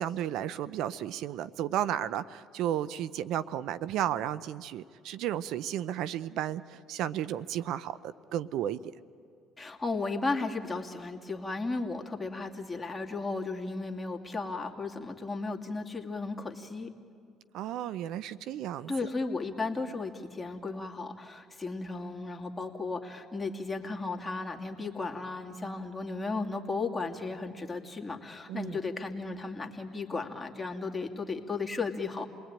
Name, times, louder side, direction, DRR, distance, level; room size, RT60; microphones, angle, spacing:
voice 1, 0.0-8.8 17.5-18.9 28.5-28.8, right 11 dB, 75° right, 16 dB, 0.6 m, -33 dB
voice 2, 9.6-16.9 18.9-32.3, left 3 dB, 20° left, 2 dB, 2.7 m, -35 dB
29.0 x 20.0 x 8.9 m, 2.4 s
supercardioid pair, 85°, 0 cm